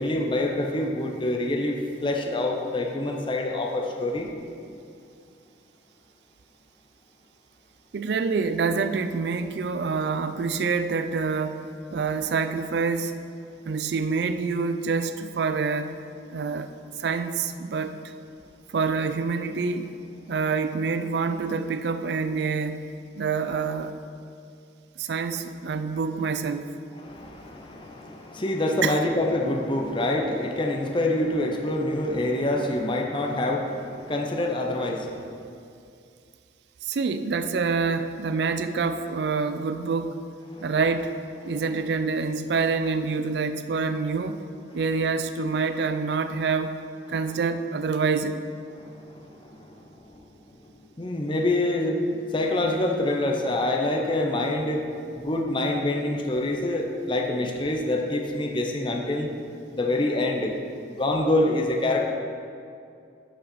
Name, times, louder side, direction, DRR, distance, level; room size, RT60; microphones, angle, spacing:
voice 1, 0.0-4.3 27.0-35.3 40.5-40.6 48.8-49.9 50.1-50.2 51.0-54.9 55.2-59.3 59.7-60.5 60.9-62.1, left 1 dB, 30° left, 2 dB, 0.6 m, -26 dB
voice 2, 7.9-13.1 13.7-16.0 16.3-16.7 17.0-18.1 18.7-19.9 20.3-24.0 25.0-26.8 28.8-29.0 36.8-40.2 40.6-41.1 41.4-44.4 44.7-46.8 47.1-48.5, right 4 dB, 65° right, 10 dB, 0.4 m, -26 dB
11.5 x 5.4 x 4.2 m, 2.5 s
head